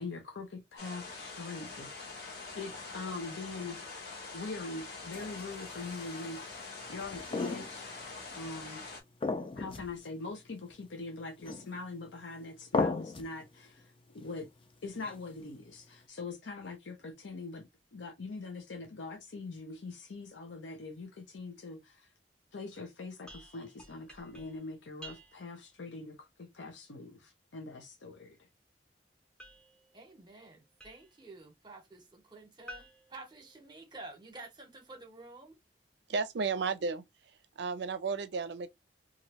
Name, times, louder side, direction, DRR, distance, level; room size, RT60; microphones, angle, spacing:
voice 1, 0.0-1.9 2.5-8.8 9.5-14.5 14.8-17.6 17.9-22.1 22.5-28.4, left 3 dB, 90° left, 0.6 m, -43 dB
sound 1, 0.8-9.0, left 3 dB, 60° left, 1.1 m, -45 dB
sound 2, 5.1-6.2 7.0-8.0 8.3-8.4 9.2-10.0 10.3-10.4 11.4-11.9 12.7-13.3 14.9-15.4, left 3 dB, 30° left, 0.4 m, -35 dB
sound 3, 23.3-25.7 29.4-31.3 32.7-34.1, right 1 dB, 5° left, 0.7 m, -53 dB
voice 2, 29.9-35.6, right 2 dB, 25° right, 0.9 m, -50 dB
voice 3, 36.1-37.0 37.6-38.7, right 4 dB, 70° right, 0.5 m, -33 dB
2.9 x 2.5 x 2.9 m
head